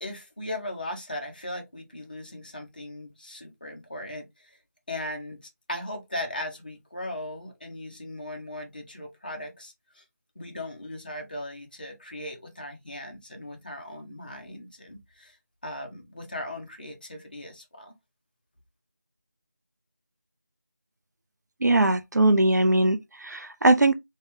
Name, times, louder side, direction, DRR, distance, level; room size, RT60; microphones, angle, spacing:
voice 1, 0.0-4.6 4.9-5.4 5.7-10.0 10.4-15.4 15.6-17.9, left 1 dB, 30° left, 0.7 m, -38 dB
voice 2, 21.6-23.9, right 2 dB, 80° right, 0.6 m, -21 dB
3.3 x 2.3 x 2.7 m
figure-of-eight pair, 175°, 9 cm